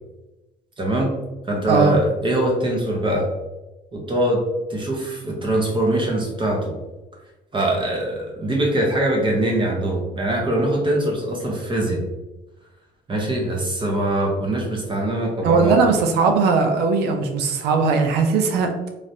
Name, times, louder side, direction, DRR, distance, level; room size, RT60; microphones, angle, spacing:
voice 1, 0.8-1.1 1.5-3.3 3.9-4.4 4.7-6.7 7.5-12.0 13.1-15.8, right 1 dB, 30° right, -1 dB, 0.8 m, -22 dB
voice 2, 15.4-18.9, right 4 dB, 75° right, 5 dB, 0.5 m, -19 dB
3.3 x 2.5 x 2.7 m, 1.1 s
cardioid pair, 110°, 17 cm